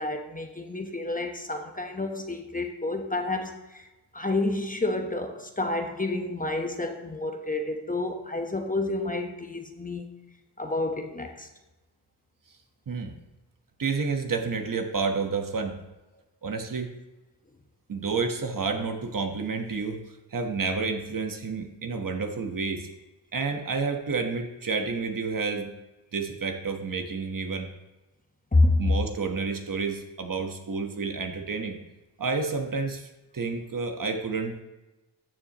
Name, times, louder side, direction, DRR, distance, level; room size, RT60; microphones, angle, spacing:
voice 1, 0.0-3.9 4.1-10.1 10.6-11.5 28.5-28.9, left 2 dB, 20° left, 1.1 m, -29 dB
voice 2, 13.8-15.8 16.4-16.9 17.9-20.0 20.3-22.9 23.3-25.7 26.1-27.7 28.8-31.8 32.2-34.6, right 4 dB, 45° right, 1.2 m, -30 dB
13.5 x 7.0 x 3.0 m
cardioid pair, 75°, 44 cm